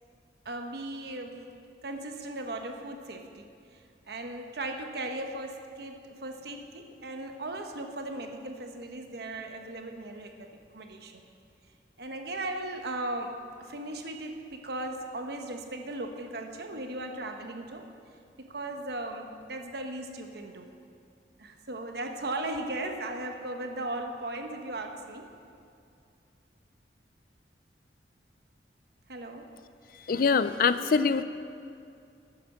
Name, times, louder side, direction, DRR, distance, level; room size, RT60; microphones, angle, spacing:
voice 1, 0.4-1.5 1.8-3.8 4.1-11.2 12.0-17.9 18.4-20.7 21.4-25.3 29.1-29.5, right 2 dB, 65° right, 4 dB, 1.0 m, -37 dB
voice 2, 30.1-31.2, left 5 dB, 55° left, 13 dB, 0.4 m, -24 dB
11.0 x 8.7 x 6.6 m, 2.5 s
head